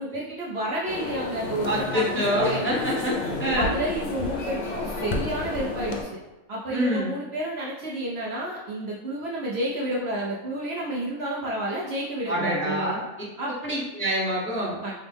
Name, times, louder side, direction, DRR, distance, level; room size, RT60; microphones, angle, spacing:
voice 1, 0.0-2.6 3.6-6.1 6.5-12.9 13.4-13.5 14.8-14.9, right 1 dB, 60° right, -5 dB, 0.7 m, -30 dB
sound 1, 0.9-6.0, left 3 dB, 80° left, 0.4 m, -31 dB
voice 2, 1.6-3.8 6.7-7.1 12.3-13.0 13.5-14.9, equal, 15° left, -6 dB, 0.6 m, -26 dB
5.1 x 2.0 x 3.3 m, 1.1 s
omnidirectional pair, 1.5 m